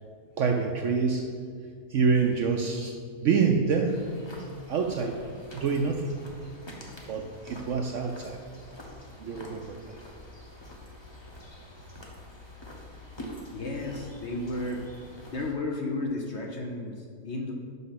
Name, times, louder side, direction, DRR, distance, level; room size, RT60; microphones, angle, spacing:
voice 1, 0.4-1.3 1.9-3.0 3.2-4.0 4.7-5.2 5.5-6.1 7.1-8.4 9.2-9.8, right 5 dB, 70° right, 2 dB, 0.7 m, -26 dB
sound 1, 3.9-15.5, equal, 20° left, 0.8 m, -46 dB
voice 2, 13.5-14.8 15.3-17.5, left 2 dB, 55° left, 0 dB, 0.9 m, -33 dB
5.8 x 5.5 x 5.8 m, 2.1 s
omnidirectional pair, 1.7 m